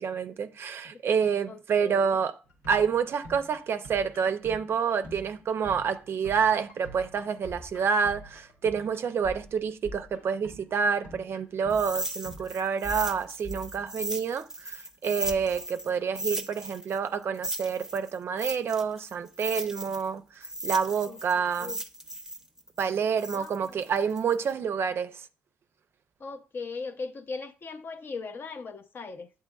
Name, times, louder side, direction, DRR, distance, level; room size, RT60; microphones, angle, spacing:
voice 1, 0.0-2.4 2.7-21.8 22.8-25.3, right 6 dB, 60° right, 0.4 m, -28 dB
voice 2, 1.5-2.2 21.1-21.8 23.3-23.7 26.2-29.3, left 4 dB, 50° left, 0.5 m, -39 dB
sound 1, 2.4-14.4 15.2-15.9, equal, 90° left, 1.1 m, -46 dB
sound 2, 11.7-15.9 16.2-20.1 20.4-24.5, right 1 dB, 10° right, 0.6 m, -36 dB
7.6 x 2.9 x 2.3 m
supercardioid pair, 65°, 5 cm